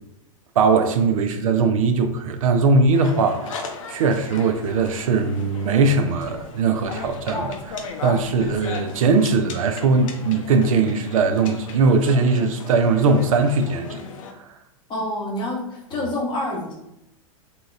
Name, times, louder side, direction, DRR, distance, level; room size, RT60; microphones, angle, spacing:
voice 1, 0.6-3.6 3.9-14.0, right 4 dB, 70° right, 6 dB, 0.4 m, -20 dB
sound 1, 2.9-14.3, left 4 dB, 65° left, 0.5 m, -36 dB
voice 2, 14.9-16.7, left 1 dB, 25° left, -2 dB, 0.8 m, -27 dB
2.8 x 2.7 x 2.4 m, 0.82 s
hypercardioid pair, 105°, 18 cm